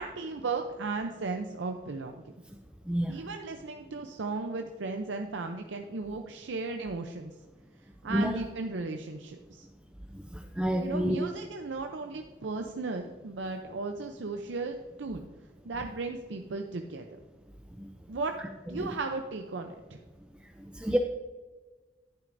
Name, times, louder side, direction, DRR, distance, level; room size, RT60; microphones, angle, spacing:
voice 1, 0.0-2.1 3.1-7.3 8.0-9.7 10.8-15.2 15.6-17.2 18.1-18.3 18.7-20.0, right 3 dB, 85° right, 4 dB, 0.6 m, -35 dB
voice 2, 2.9-3.2 8.1-8.4 10.1-11.2 17.8-17.9 18.8-18.9 20.7-21.0, equal, 5° right, 3 dB, 0.4 m, -29 dB
10.5 x 9.1 x 2.6 m, 1.3 s
head